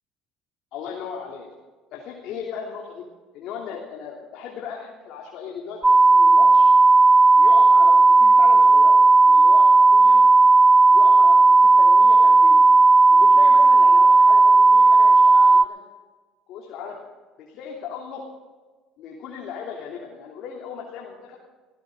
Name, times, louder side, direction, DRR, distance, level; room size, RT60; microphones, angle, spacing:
voice 1, 0.7-1.5 1.9-3.0 3.3-6.7 7.4-10.2 10.9-12.6 13.1-15.8 16.5-17.0 17.5-18.2 19.0-21.4, left 7 dB, 65° left, -1 dB, 3.0 m, -36 dB
sound 1, 5.8-15.6, right 3 dB, 15° right, 0.4 m, -13 dB
20.5 x 16.5 x 3.9 m, 1.3 s
supercardioid pair, 80°, 0 cm